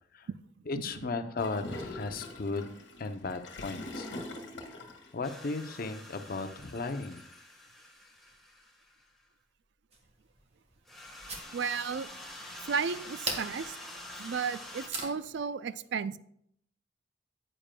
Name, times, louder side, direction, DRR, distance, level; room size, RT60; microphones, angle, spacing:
voice 1, 0.7-2.7 3.0-4.1 5.1-7.2, left 3 dB, 50° left, 8 dB, 0.6 m, -35 dB
Gurgling / Toilet flush, 1.4-5.1, left 2 dB, 70° left, 1.6 m, -43 dB
sound 1, 5.2-9.1 10.8-14.9, left 1 dB, ahead, 1.4 m, -47 dB
sound 2, 9.9-15.4, right 3 dB, 35° right, 1.3 m, -43 dB
voice 2, 11.5-12.1 12.7-13.7 14.2-16.2, right 6 dB, 70° right, 15 dB, 0.4 m, -33 dB
9.9 x 8.8 x 2.2 m, 0.70 s
head